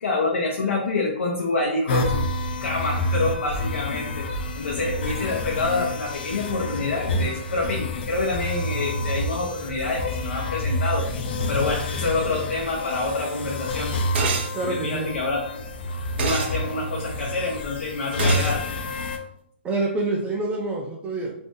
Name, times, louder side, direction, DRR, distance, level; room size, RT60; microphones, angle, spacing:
voice 1, 0.0-2.2 2.6-4.3 4.6-11.1 11.5-14.0 14.6-15.6 16.2-18.7, left 3 dB, 90° left, -2 dB, 0.7 m, -27 dB
sound 1, 1.9-19.2, left 1 dB, 50° left, 0.5 m, -28 dB
sound 2, 14.1-14.5 16.2-16.5 18.2-18.6, right 4 dB, 55° right, 0.7 m, -26 dB
voice 2, 14.5-15.1 19.6-21.3, right 3 dB, 15° right, -4 dB, 0.4 m, -26 dB
2.6 x 2.5 x 3.6 m, 0.74 s
hypercardioid pair, 150°, 7 cm